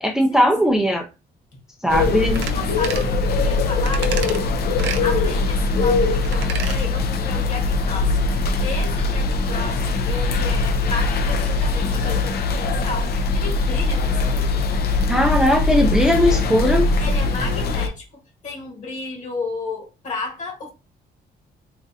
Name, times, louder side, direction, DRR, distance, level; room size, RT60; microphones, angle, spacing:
voice 1, 0.0-1.0 1.8-2.5 15.1-16.9, equal, 5° right, 0.4 m, -18 dB
sound 1, 1.9-17.9, left 3 dB, 65° left, 0.5 m, -21 dB
sound 2, 2.3-2.6 2.8-3.1 3.9-4.4 4.8-5.0 6.2-6.8 7.1-7.2, right 7 dB, 85° right, 0.5 m, -30 dB
voice 2, 2.5-14.6 17.0-20.7, left 3 dB, 45° left, 1.4 m, -33 dB
4.1 x 2.5 x 2.6 m
cardioid pair, 155°, 18 cm